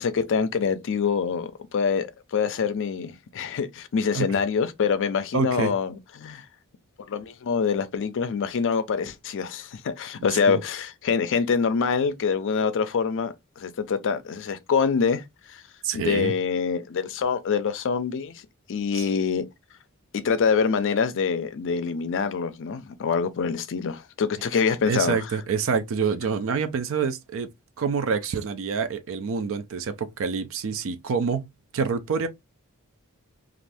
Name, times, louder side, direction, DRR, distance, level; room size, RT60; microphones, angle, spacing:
voice 1, 0.0-6.4 7.1-15.2 15.5-15.6 15.9-18.4 18.7-19.4 20.1-25.2, left 6 dB, 60° left, 0.4 m, -25 dB
voice 2, 5.3-5.7 10.5-10.6 15.8-16.3 19.0-19.1 24.9-27.5 27.8-31.5 31.7-32.3, right 5 dB, 60° right, 0.4 m, -27 dB
2.6 x 2.5 x 3.3 m
head